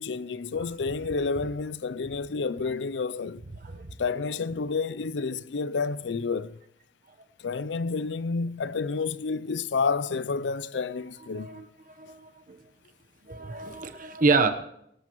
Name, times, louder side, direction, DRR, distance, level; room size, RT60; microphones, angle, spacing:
voice 1, 0.0-3.4 4.0-6.6 7.4-11.6, left 4 dB, 90° left, 0.5 m, -30 dB
voice 2, 12.0-12.6 13.3-14.5, right 4 dB, 50° right, 1.0 m, -27 dB
18.0 x 17.5 x 3.1 m
head